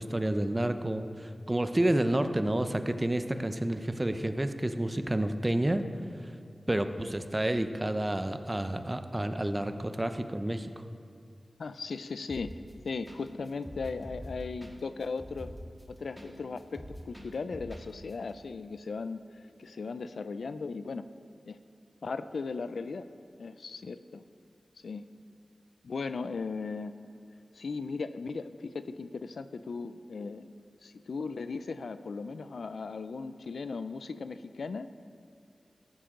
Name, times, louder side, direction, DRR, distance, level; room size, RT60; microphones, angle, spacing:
voice 1, 0.0-5.8 6.2-6.3 6.7-10.7, right 1 dB, 25° right, 9 dB, 0.8 m, -30 dB
voice 2, 11.6-12.5 12.8-15.5 15.9-21.1 21.5-21.6 22.0-23.1 23.4-24.2 24.8-25.0 25.8-26.9 27.5-30.5 30.8-34.9, left 4 dB, 90° left, 12 dB, 0.4 m, -37 dB
sound 1, 12.3-12.7 13.1-13.2 13.5-16.3 16.6-17.8 18.1-18.2, equal, 5° left, 1.9 m, -44 dB
14.5 x 11.5 x 3.8 m, 2.6 s
cardioid pair, 50°, 0 cm